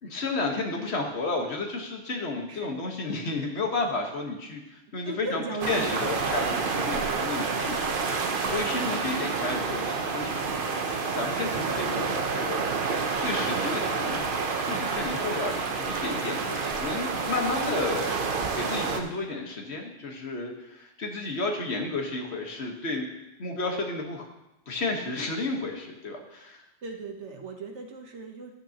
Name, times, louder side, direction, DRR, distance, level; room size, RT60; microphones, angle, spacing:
voice 1, 0.0-10.4 10.9-12.6 13.2-14.3 14.6-18.2 18.5-23.1 23.4-24.3 24.7-26.6, left 3 dB, 55° left, 2 dB, 1.6 m, -32 dB
voice 2, 2.5-3.0 5.0-6.0 26.8-28.5, right 3 dB, 65° right, 2 dB, 1.3 m, -37 dB
sound 1, 5.6-19.0, right 4 dB, 50° right, 0.9 m, -29 dB
12.5 x 9.1 x 2.9 m, 0.93 s
omnidirectional pair, 1.3 m